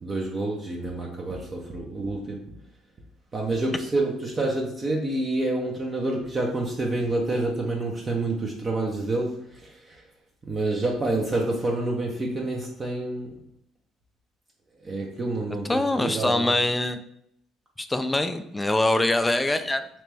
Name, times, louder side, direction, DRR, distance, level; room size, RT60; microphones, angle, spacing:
voice 1, 0.0-2.5 3.3-10.0 10.4-13.3 14.8-16.5, right 2 dB, 35° right, -1 dB, 0.6 m, -28 dB
voice 2, 15.7-17.0 17.8-19.9, left 2 dB, 15° left, 9 dB, 0.4 m, -24 dB
3.3 x 3.0 x 3.3 m, 0.75 s
hypercardioid pair, 65°, 0 cm